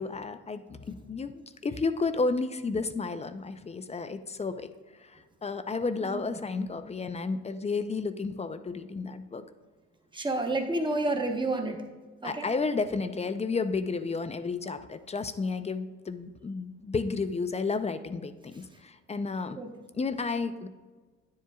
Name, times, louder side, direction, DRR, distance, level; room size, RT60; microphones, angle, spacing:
voice 1, 0.0-9.4 12.2-19.6 19.9-20.7, left 4 dB, 20° left, 11 dB, 0.4 m, -32 dB
voice 2, 6.0-6.4 10.1-11.8 12.2-12.5 19.6-19.7, right 2 dB, 15° right, 4 dB, 1.0 m, -30 dB
9.7 x 7.4 x 2.3 m, 1.4 s
cardioid pair, 90°, 30 cm